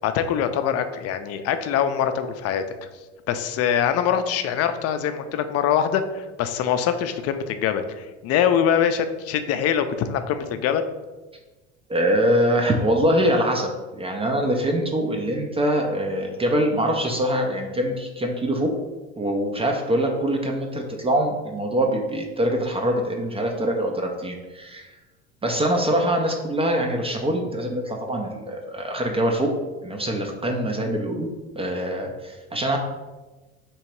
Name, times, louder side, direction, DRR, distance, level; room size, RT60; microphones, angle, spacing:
voice 1, 0.0-2.6 3.3-10.8, left 8 dB, 45° left, 9 dB, 0.5 m, -23 dB
voice 2, 11.9-18.7 19.2-25.0 25.4-29.5 29.8-31.3 31.6-32.8, right 1 dB, 15° right, 2 dB, 0.4 m, -24 dB
3.1 x 2.7 x 4.5 m, 1.2 s
supercardioid pair, 100°, 34 cm